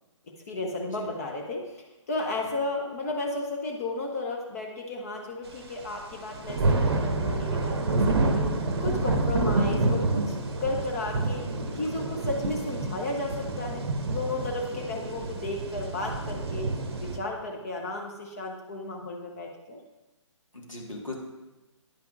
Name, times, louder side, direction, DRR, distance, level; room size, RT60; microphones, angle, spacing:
voice 1, 0.3-8.5 8.8-11.4 11.8-19.8, left 2 dB, 30° left, 0 dB, 0.6 m, -34 dB
sound 1, 5.9-6.0 6.1-17.2, right 2 dB, 50° right, 0.7 m, -28 dB
voice 2, 11.5-12.0 14.7-14.8 20.5-21.1, left 2 dB, 80° left, 0 dB, 1.6 m, -41 dB
9.8 x 5.8 x 2.5 m, 1.1 s
figure-of-eight pair, 135°, 16 cm